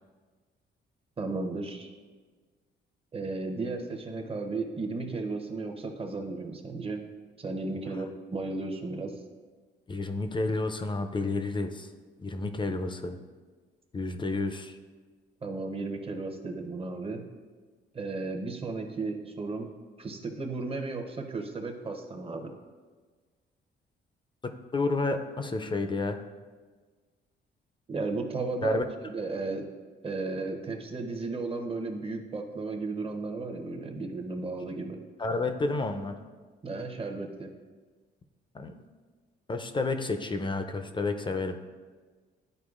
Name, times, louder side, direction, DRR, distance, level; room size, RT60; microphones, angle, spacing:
voice 1, 1.2-1.9 3.1-7.0 7.4-9.1 15.4-17.2 17.9-19.7 20.0-22.5 27.9-29.7 30.0-35.0 36.6-37.5, right 3 dB, 30° right, 4 dB, 0.9 m, -34 dB
voice 2, 9.9-11.9 12.2-13.2 13.9-14.8 24.7-26.2 28.6-28.8 35.2-36.1 38.5-38.8 39.5-41.6, left 3 dB, 25° left, 7 dB, 0.5 m, -30 dB
11.0 x 4.5 x 2.5 m, 1.4 s
cardioid pair, 90°, 20 cm